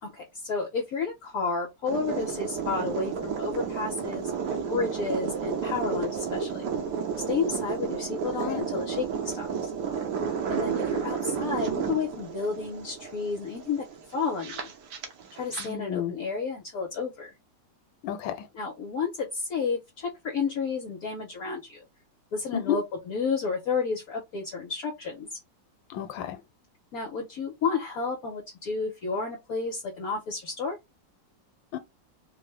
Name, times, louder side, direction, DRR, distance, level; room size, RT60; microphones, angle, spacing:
voice 1, 0.0-4.3 4.7-6.7 7.3-9.7 10.5-13.8 14.1-14.7 15.3-17.3 18.5-21.8 22.3-25.4 26.9-30.8, left 5 dB, 60° left, 1.1 m, -31 dB
sound 1, 1.9-15.7, right 6 dB, 70° right, 1.3 m, -32 dB
voice 2, 15.6-16.1 18.0-18.3 22.5-22.8 25.9-26.4 31.7-31.8, left 10 dB, 90° left, 1.3 m, -30 dB
3.6 x 2.1 x 3.3 m
omnidirectional pair, 2.0 m